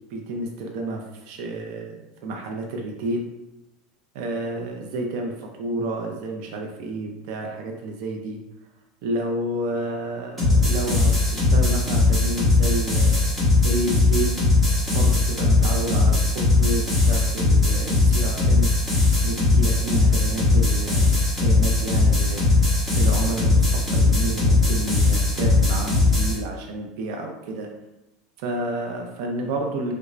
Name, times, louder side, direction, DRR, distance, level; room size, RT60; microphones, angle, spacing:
voice 1, 0.1-1.9 2.2-3.3 4.1-8.4 9.0-13.2 13.6-14.3 14.9-18.7 19.2-27.7 28.4-29.9, right 1 dB, 60° right, 2 dB, 0.5 m, -30 dB
sound 1, 10.4-26.4, left 3 dB, 15° right, 1.1 m, -19 dB
3.2 x 2.4 x 3.1 m, 0.94 s
supercardioid pair, 155°, 0 cm